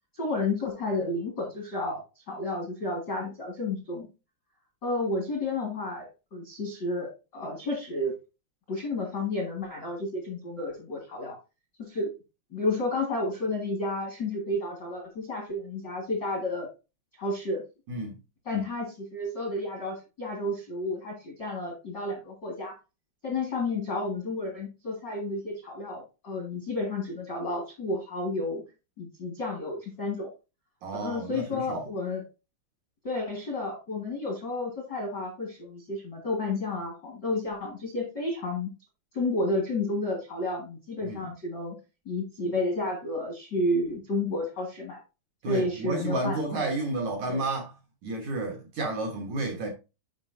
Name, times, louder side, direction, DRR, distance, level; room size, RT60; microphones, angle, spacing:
voice 1, 0.2-2.0 2.3-4.1 4.8-8.1 8.7-11.4 11.8-12.1 12.5-16.7 17.2-17.6 18.4-22.7 23.2-28.6 29.0-30.3 30.9-32.2 33.0-38.7 39.1-41.7 42.0-45.0 45.4-46.4 47.3-47.4, left 2 dB, 65° left, 1.0 m, -31 dB
voice 2, 30.8-31.9 41.0-41.3 45.4-47.7 48.0-49.7, right 2 dB, 85° right, 1.6 m, -31 dB
9.6 x 5.5 x 2.7 m
omnidirectional pair, 5.3 m